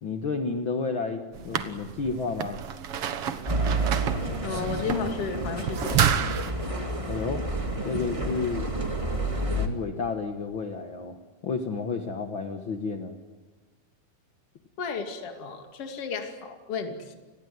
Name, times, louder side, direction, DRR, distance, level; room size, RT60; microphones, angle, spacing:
voice 1, 0.0-2.6 7.0-7.4 7.8-8.6 9.5-11.2 11.4-13.2, left 4 dB, 80° left, 6 dB, 1.1 m, -31 dB
sound 1, 1.3-6.5, right 8 dB, 65° right, 1.4 m, -29 dB
sound 2, 3.5-9.7, right 2 dB, 15° right, 1.0 m, -30 dB
voice 2, 4.4-6.1 14.8-17.1, left 5 dB, 40° left, 5 dB, 3.0 m, -33 dB
29.0 x 20.5 x 9.5 m, 1.3 s
omnidirectional pair, 4.5 m